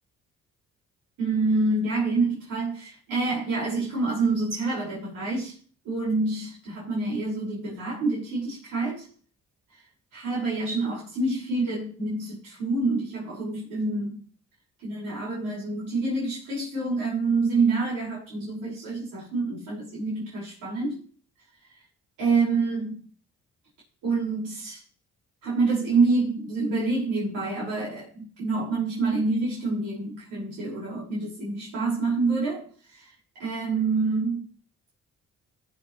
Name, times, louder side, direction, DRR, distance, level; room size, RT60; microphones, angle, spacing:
voice 1, 1.2-5.6 5.8-9.1 9.7-14.2 14.8-21.0 21.6-21.8 22.2-23.0 24.0-24.8 25.4-34.5, right 3 dB, 90° right, -5 dB, 5.3 m, -27 dB
15.0 x 7.8 x 3.2 m, 0.43 s
cardioid pair, 90°, 30 cm